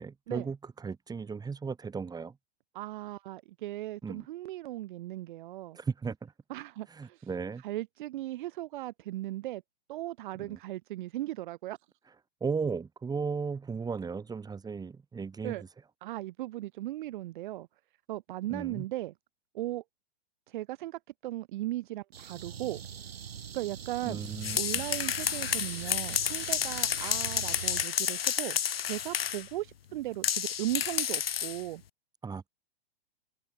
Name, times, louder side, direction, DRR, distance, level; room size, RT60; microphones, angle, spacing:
voice 1, 0.0-2.3 4.0-4.3 5.7-6.3 6.9-7.6 10.4-10.6 12.4-15.6 18.5-18.8 24.0-24.6 32.2-32.5, right 5 dB, 10° right, 5.1 m, -35 dB
voice 2, 2.7-5.8 6.5-7.2 7.6-9.6 9.9-11.8 15.4-15.6 16.0-17.7 18.1-19.1 19.5-19.8 20.5-22.8 23.5-28.6 28.9-31.8, right 16 dB, 55° right, 6.3 m, -37 dB
sound 1, 22.1-27.9, right 8 dB, 75° right, 1.8 m, -42 dB
sound 2, 24.2-29.5 30.2-31.6, left 9 dB, 70° left, 2.5 m, -31 dB
open air
figure-of-eight pair, 110°, 31 cm